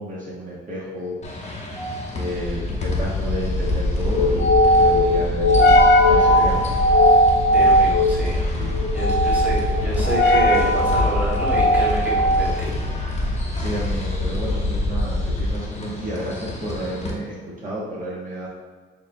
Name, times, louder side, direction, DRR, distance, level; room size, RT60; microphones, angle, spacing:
voice 1, 0.0-1.4 2.1-5.8 6.1-6.8 8.5-8.8 13.6-18.5, equal, 40° right, -6 dB, 1.0 m, -31 dB
sound 1, 1.2-17.1, left 1 dB, 35° left, 0.9 m, -34 dB
voice 2, 1.7-2.1 7.5-12.7, right 1 dB, 10° right, -6 dB, 1.4 m, -28 dB
sound 2, 2.3-15.7, left 1 dB, 55° left, 0.6 m, -19 dB
6.4 x 2.3 x 2.6 m, 1.5 s
cardioid pair, 90°, 20 cm